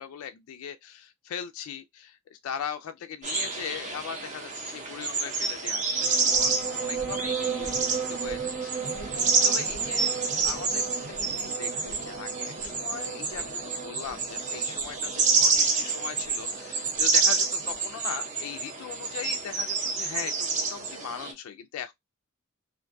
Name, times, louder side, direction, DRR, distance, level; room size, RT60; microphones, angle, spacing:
voice 1, 0.0-10.1 10.4-21.9, left 8 dB, 85° left, 0.3 m, -39 dB
sound 1, 3.2-21.3, right 4 dB, 35° right, 0.6 m, -28 dB
sound 2, 5.9-17.8, right 6 dB, 75° right, 1.2 m, -37 dB
2.5 x 2.2 x 2.4 m
head